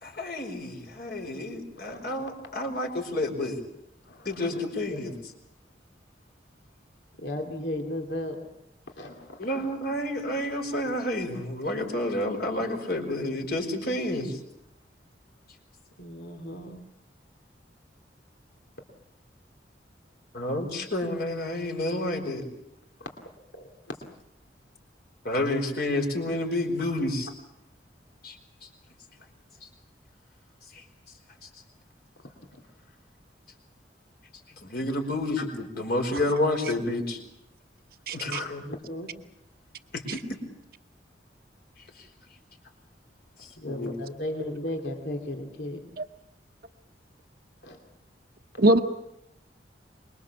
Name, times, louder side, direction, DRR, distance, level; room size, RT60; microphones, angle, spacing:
voice 1, 0.0-3.6 4.2-5.1 9.4-14.4 20.3-22.4 25.2-27.3 28.2-28.3 34.6-37.2 38.2-38.6 39.9-40.2 43.6-44.0, left 1 dB, 60° left, 3 dB, 4.9 m, -29 dB
voice 2, 1.8-2.1 4.0-4.6 4.9-5.0 7.2-8.4 8.9-9.5 16.0-16.8 23.0-23.1 23.6-23.7 32.5-32.6 38.1-39.1 43.6-45.8 47.6-47.8 48.5-48.6, left 1 dB, 75° left, 3 dB, 2.8 m, -36 dB
voice 3, 38.1-38.4 40.1-40.2 46.0-46.1 48.6-48.8, right 1 dB, 55° right, 3 dB, 0.9 m, -22 dB
25.5 x 22.0 x 7.2 m, 0.81 s
head